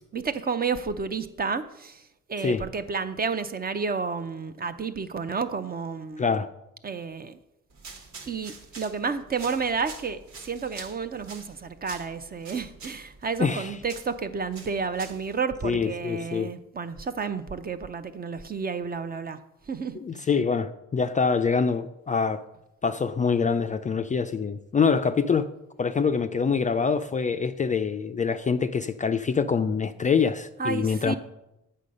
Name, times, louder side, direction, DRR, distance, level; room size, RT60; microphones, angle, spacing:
voice 1, 0.1-2.0 2.3-6.2 6.8-7.4 8.3-10.2 10.4-19.4 19.7-20.0 30.6-31.1, right 5 dB, 30° right, 11 dB, 0.6 m, -31 dB
voice 2, 6.2-6.5 13.4-13.8 15.6-16.5 20.0-22.4 22.8-25.5 25.8-31.1, left 5 dB, 25° left, 9 dB, 0.4 m, -25 dB
sound 1, 7.7-15.4, right 4 dB, 70° right, 1.6 m, -46 dB
8.2 x 5.6 x 5.2 m, 0.89 s
cardioid pair, 90°, 30 cm